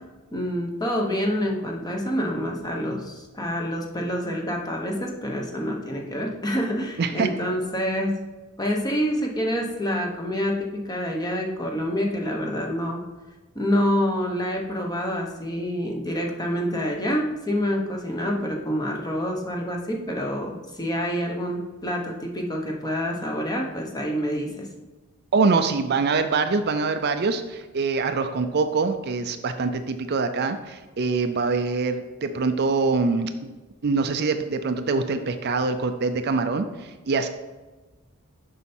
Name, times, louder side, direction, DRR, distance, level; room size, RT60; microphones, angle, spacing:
voice 1, 0.3-8.2 8.6-13.0 13.5-24.7, equal, 20° left, 0 dB, 1.0 m, -27 dB
voice 2, 25.3-33.5 33.8-37.3, right 4 dB, 50° right, 8 dB, 0.5 m, -24 dB
7.0 x 5.6 x 4.4 m, 1.2 s
head